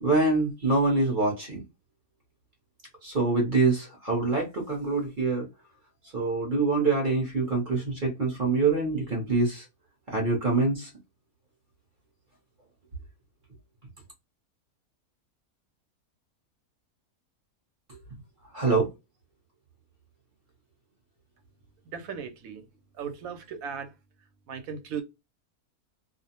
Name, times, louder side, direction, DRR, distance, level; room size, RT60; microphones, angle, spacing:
voice 1, 0.0-1.6 3.0-5.5 6.1-9.6 10.1-10.9 18.5-18.9, right 3 dB, 45° right, 0.7 m, -25 dB
voice 2, 21.9-22.6 23.0-23.9 24.5-25.0, right 7 dB, 70° right, 1.0 m, -36 dB
2.5 x 2.0 x 2.8 m
omnidirectional pair, 1.6 m